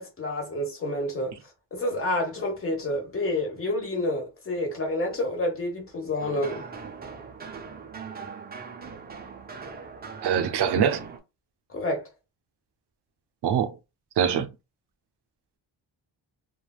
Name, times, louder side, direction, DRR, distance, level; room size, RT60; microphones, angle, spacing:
voice 1, 0.0-1.3 1.7-6.7 11.7-12.1, left 1 dB, 30° left, 1.0 m, -29 dB
sound 1, 6.2-11.2, right 5 dB, 25° right, 0.4 m, -40 dB
voice 2, 10.2-11.0 13.4-13.8 14.2-14.5, right 8 dB, 70° right, 0.6 m, -23 dB
3.2 x 2.2 x 2.3 m
wide cardioid pair, 180°, 42 cm